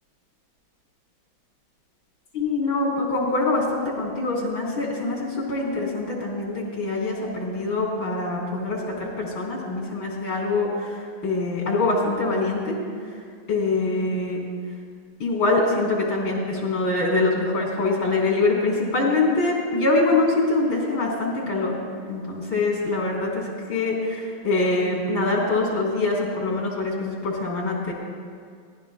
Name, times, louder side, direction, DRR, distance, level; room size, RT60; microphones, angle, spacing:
voice 1, 2.3-11.0 11.2-12.7 13.5-14.4 15.2-21.8 22.1-27.9, left 3 dB, 75° left, -2 dB, 4.5 m, -24 dB
24.5 x 18.5 x 2.3 m, 2.1 s
omnidirectional pair, 2.2 m